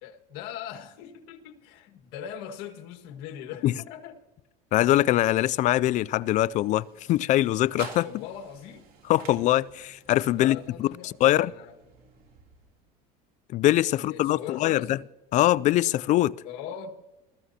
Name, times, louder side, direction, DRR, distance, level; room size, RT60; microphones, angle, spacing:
voice 1, 0.0-4.2 8.0-8.9 10.3-11.8 13.9-14.9 16.4-16.9, left 9 dB, 70° left, 1.8 m, -40 dB
voice 2, 4.7-8.1 9.1-11.5 13.5-15.0 15.3-16.3, left 14 dB, 45° left, 0.4 m, -23 dB
sound 1, 4.9-13.0, right 5 dB, 55° right, 2.9 m, -50 dB
21.5 x 14.0 x 2.8 m
supercardioid pair, 115°, 18 cm